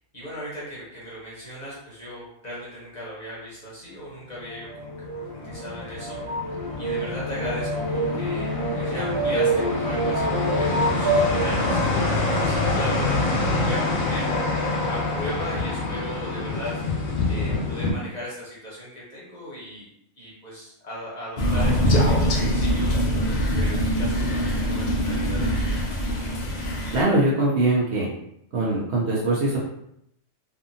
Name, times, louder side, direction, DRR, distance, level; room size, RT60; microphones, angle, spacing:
voice 1, 0.1-6.2 6.8-11.8 12.4-14.3 14.8-16.8 17.2-19.9 20.2-23.0 23.6-25.7, left 1 dB, 35° left, -7 dB, 0.9 m, -37 dB
sound 1, 4.5-17.9, left 3 dB, 85° left, 1.1 m, -26 dB
sound 2, 4.5-11.9, right 2 dB, 80° right, 1.1 m, -27 dB
Crow, 21.4-27.0, equal, 70° left, 0.4 m, -23 dB
voice 2, 26.9-28.1 28.5-29.6, right 2 dB, 60° right, -4 dB, 0.8 m, -22 dB
2.7 x 2.6 x 2.6 m, 0.75 s
omnidirectional pair, 1.4 m